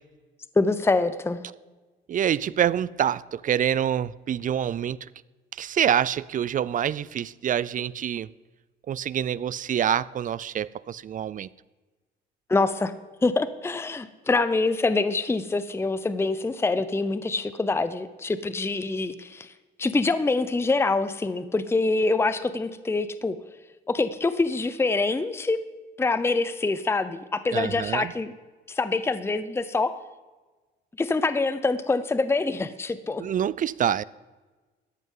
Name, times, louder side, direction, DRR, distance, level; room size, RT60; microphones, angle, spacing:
voice 1, 0.6-1.4 12.5-12.9 13.2-19.5 19.8-23.4 23.9-25.6 26.0-28.3 28.7-29.9 31.0-33.2, left 3 dB, 10° left, 13 dB, 0.6 m, -25 dB
voice 2, 2.1-5.1 5.5-8.3 8.9-11.5 27.5-28.1 33.2-34.0, right 9 dB, 40° right, 21 dB, 0.4 m, -26 dB
14.0 x 10.5 x 3.8 m, 1.3 s
cardioid pair, 90°, 20 cm